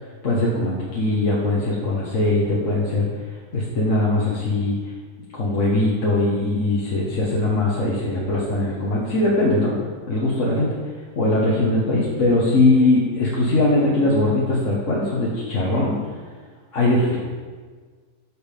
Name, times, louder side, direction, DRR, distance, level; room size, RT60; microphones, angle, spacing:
voice 1, 0.2-3.1 3.5-4.7 5.3-9.7 10.1-10.7 11.1-15.9 16.7-17.2, left 2 dB, 50° left, -5 dB, 1.8 m, -20 dB
13.5 x 6.6 x 3.6 m, 1.5 s
omnidirectional pair, 1.7 m